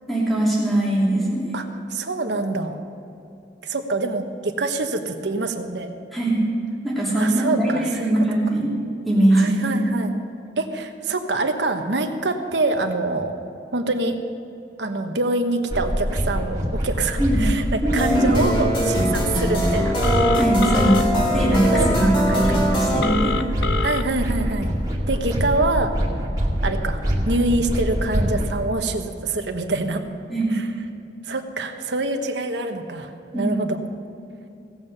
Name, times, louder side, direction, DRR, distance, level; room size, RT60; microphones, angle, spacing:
voice 1, 0.1-1.5 6.1-6.4 6.8-8.7 9.0-9.9 17.2-17.4 17.8-18.3 20.4-21.1 21.3-23.5 30.3-30.5 33.3-33.5, right 1 dB, ahead, -7 dB, 2.9 m, -21 dB
voice 2, 1.9-2.8 3.6-5.9 7.2-8.1 9.3-10.1 10.6-13.4 13.7-14.2 14.8-17.6 17.9-19.9 21.7-22.6 23.8-24.7 25.1-25.9 26.6-30.0 30.5-30.6 31.2-33.8, right 2 dB, 80° right, 5 dB, 1.1 m, -25 dB
sound 1, 15.7-28.5, equal, 25° right, 2.1 m, -25 dB
sound 2, 17.9-23.0, equal, 30° left, 2.7 m, -23 dB
Telephone, 20.0-21.0 23.0-24.0, left 5 dB, 65° left, 0.6 m, -26 dB
17.5 x 7.4 x 6.7 m, 2.7 s
head